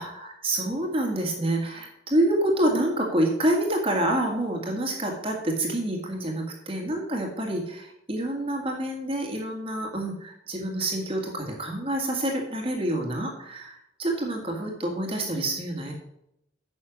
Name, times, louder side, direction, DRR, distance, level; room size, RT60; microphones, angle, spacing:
voice 1, 0.0-15.9, right 1 dB, 30° right, 0 dB, 1.8 m, -27 dB
9.7 x 6.3 x 6.3 m, 0.80 s
head